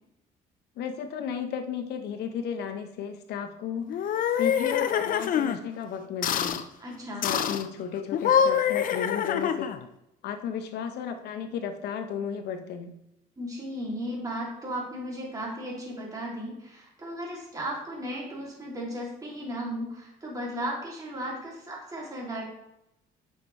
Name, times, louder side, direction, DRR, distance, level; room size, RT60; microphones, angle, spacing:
voice 1, 0.8-4.1 4.4-6.6 7.2-9.7 10.2-12.9, left 7 dB, 75° left, 6 dB, 1.0 m, -34 dB
sound 1, 3.9-5.6 6.2-6.6 7.2-7.7 8.1-9.8, left 8 dB, 55° left, 0.6 m, -25 dB
voice 2, 6.8-7.3 13.4-22.4, equal, 20° right, -3 dB, 2.6 m, -35 dB
8.3 x 5.6 x 3.2 m, 0.84 s
cardioid pair, 110°, 17 cm